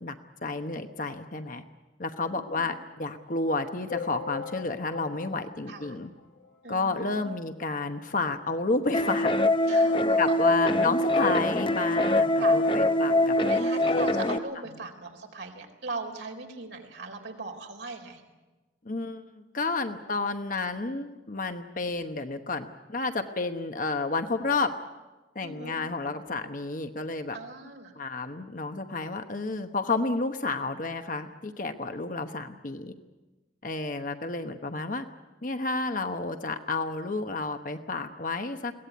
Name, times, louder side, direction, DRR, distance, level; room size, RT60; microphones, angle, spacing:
voice 1, 0.4-1.6 2.0-6.1 6.7-9.3 9.7-9.8 10.2-13.4 18.8-24.8 25.3-27.4 28.0-32.9 33.6-35.0 35.4-38.7, left 3 dB, 45° left, 7 dB, 1.1 m, -31 dB
voice 2, 2.3-2.7 5.7-6.0 6.6-7.3 9.6-10.2 12.4-12.6 13.4-18.2 25.4-25.8 27.3-27.9, right 3 dB, 70° right, 3 dB, 3.9 m, -39 dB
sound 1, 3.9-6.7 7.2-7.3 7.5-7.7 7.9-8.0 8.9-9.0 9.5-9.6, left 6 dB, 75° left, 1.8 m, -40 dB
sound 2, 8.9-14.4, left 1 dB, 25° left, 0.7 m, -23 dB
22.0 x 17.5 x 9.3 m, 1.2 s
head